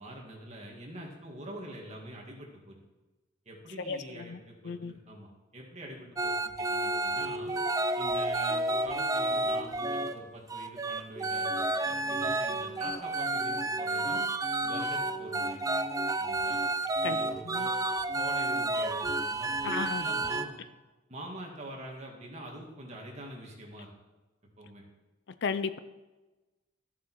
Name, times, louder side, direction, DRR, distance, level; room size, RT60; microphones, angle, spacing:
voice 1, 0.0-2.8 3.5-7.5 8.0-14.2 14.6-15.7 16.2-16.6 17.0-17.8 18.1-20.6 21.1-23.9 24.6-24.8, right 1 dB, 35° right, -1 dB, 2.2 m, -45 dB
voice 2, 3.8-4.4 4.6-4.9 17.0-17.2 17.4-17.7 19.6-20.0 25.4-25.8, left 5 dB, 65° left, 13 dB, 0.5 m, -34 dB
sound 1, 6.2-10.2 10.5-20.5, right 2 dB, 20° right, 0.5 m, -30 dB
13.5 x 7.3 x 4.6 m, 1.1 s
head